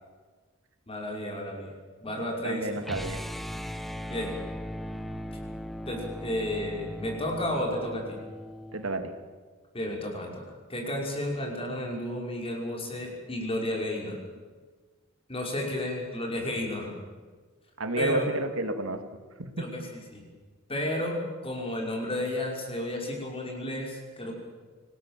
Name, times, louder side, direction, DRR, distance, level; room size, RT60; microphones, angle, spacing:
voice 1, 0.9-1.7 2.0-2.8 4.1-4.4 5.9-8.2 9.7-10.4 10.7-14.2 15.3-16.9 17.9-18.3 19.6-20.2 20.7-21.2 21.4-24.3, left 1 dB, 30° left, 0 dB, 5.8 m, -32 dB
voice 2, 2.4-3.2 8.7-9.1 17.8-19.0 19.4-19.6, right 2 dB, 80° right, 6 dB, 2.4 m, -30 dB
sound 1, 2.8-8.9, equal, ahead, 1.0 m, -38 dB
25.5 x 19.0 x 7.6 m, 1.4 s
head